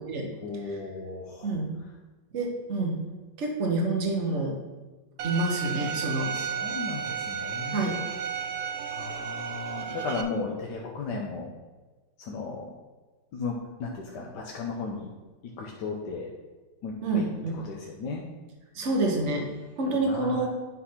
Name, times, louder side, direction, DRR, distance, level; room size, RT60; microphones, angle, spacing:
voice 1, 0.4-1.6 6.3-7.9 8.9-11.5 12.2-12.7 13.3-15.1 15.4-16.3 16.8-17.2 17.5-18.2 20.0-20.5, left 4 dB, 65° left, -1 dB, 1.4 m, -35 dB
voice 2, 1.4-1.7 2.3-3.0 3.4-4.6 5.2-6.3 7.7-8.0 17.0-17.5 18.7-19.5 19.8-20.5, right 2 dB, 40° right, 1 dB, 1.4 m, -27 dB
Bowed string instrument, 5.2-10.2, right 7 dB, 65° right, 1.0 m, -33 dB
9.6 x 4.2 x 5.6 m, 1.3 s
omnidirectional pair, 2.2 m